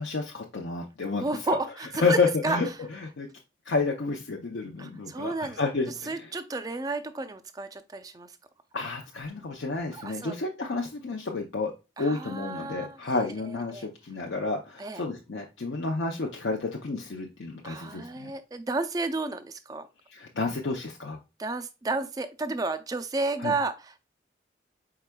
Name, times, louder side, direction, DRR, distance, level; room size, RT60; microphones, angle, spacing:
voice 1, 0.0-1.6 2.0-3.3 3.7-6.3 8.7-18.3 20.1-21.2 23.4-23.5, left 3 dB, 75° left, 0 dB, 0.6 m, -30 dB
voice 2, 1.2-2.2 2.4-2.6 4.8-5.6 6.1-8.3 9.9-10.3 12.0-13.0 13.7-13.9 14.8-15.0 17.6-19.9 21.4-24.0, right 3 dB, 20° right, 9 dB, 0.3 m, -32 dB
4.7 x 4.4 x 2.2 m, 0.27 s
head